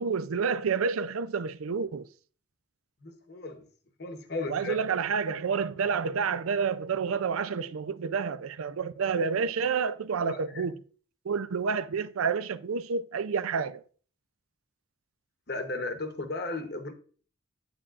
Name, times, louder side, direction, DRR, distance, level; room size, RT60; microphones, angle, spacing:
voice 1, 0.0-2.0 4.5-10.8 11.3-13.8, right 5 dB, 90° right, 0.5 m, -29 dB
voice 2, 3.0-3.7 4.0-4.8 10.2-10.6 15.5-16.9, left 2 dB, 50° left, 1.0 m, -35 dB
8.9 x 8.5 x 2.5 m
head